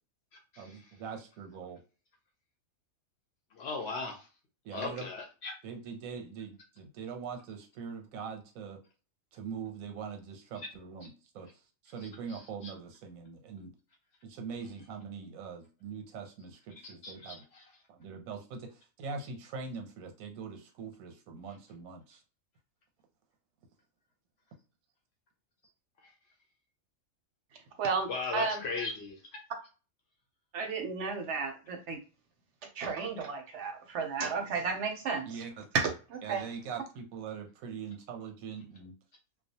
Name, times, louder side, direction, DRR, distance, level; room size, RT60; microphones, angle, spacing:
voice 1, 0.6-1.8 4.6-5.1 5.6-8.8 9.3-11.5 11.8-13.7 14.2-17.4 17.9-18.7 19.0-22.2 35.3-35.7 36.2-38.9, right 6 dB, 85° right, 1.1 m, -42 dB
voice 2, 3.6-4.3 4.7-5.5 12.3-12.4 16.8-17.6 28.1-29.2, left 4 dB, 60° left, 0.7 m, -37 dB
voice 3, 27.8-28.6 30.5-32.0 32.8-35.4 35.7-36.4, right 4 dB, 65° right, 0.8 m, -33 dB
2.3 x 2.2 x 2.7 m
omnidirectional pair, 1.4 m